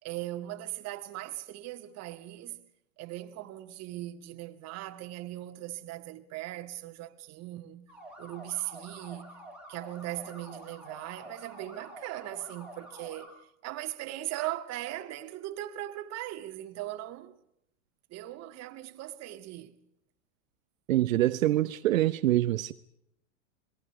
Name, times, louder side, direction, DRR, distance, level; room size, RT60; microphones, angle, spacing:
voice 1, 0.0-2.7 3.0-7.9 8.2-9.4 9.7-17.4 18.1-19.8, right 15 dB, 40° right, 2.2 m, -39 dB
sound 1, 7.9-13.3, right 1 dB, ahead, 7.3 m, -48 dB
voice 2, 20.9-22.7, right 14 dB, 80° right, 1.0 m, -25 dB
27.5 x 21.5 x 5.0 m
hypercardioid pair, 120°, 40 cm